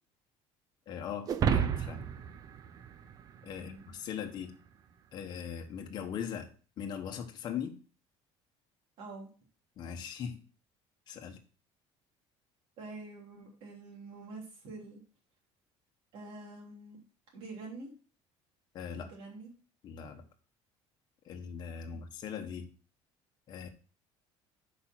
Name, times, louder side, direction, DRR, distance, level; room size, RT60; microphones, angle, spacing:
voice 1, 0.9-2.1 3.4-4.5 5.1-6.5 6.8-7.8 9.8-10.4 11.1-11.4 18.7-19.1 19.8-20.2 21.2-22.7 23.5-23.7, left 7 dB, 40° left, 3 dB, 1.1 m, -40 dB
sound 1, 1.3-3.8, right 8 dB, 35° right, 0.5 m, -31 dB
voice 2, 3.5-3.9 9.0-9.3 12.8-15.0 16.1-17.0 17.3-17.9 18.9-19.5 21.9-22.0, right 3 dB, 55° right, -2 dB, 3.5 m, -46 dB
8.1 x 5.3 x 4.5 m, 0.38 s
cardioid pair, 170°, 11 cm